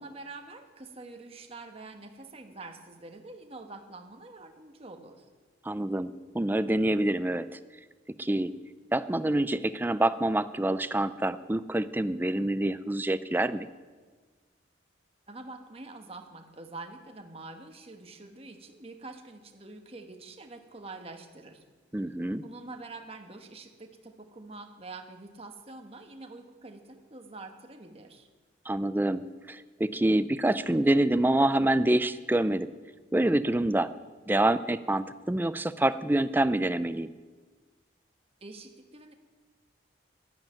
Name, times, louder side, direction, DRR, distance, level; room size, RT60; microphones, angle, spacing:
voice 1, 0.0-5.3 15.3-21.6 22.4-28.3 38.4-39.1, right 3 dB, 30° right, 5 dB, 1.3 m, -46 dB
voice 2, 5.7-7.6 8.2-8.5 8.9-13.7 21.9-22.4 28.7-29.2 29.5-32.7 33.1-33.9 34.3-37.1, right 1 dB, 10° right, 14 dB, 0.4 m, -26 dB
11.5 x 11.5 x 8.9 m, 1.4 s
head